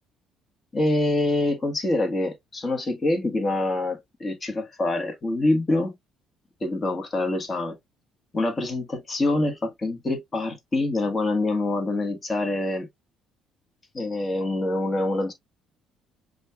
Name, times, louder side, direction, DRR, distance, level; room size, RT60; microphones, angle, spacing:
voice 1, 0.7-5.9 6.6-7.8 8.3-12.9 13.9-15.3, left 2 dB, 30° left, 1.4 m, -25 dB
7.3 x 2.5 x 2.3 m
cardioid pair, 110°, 0 cm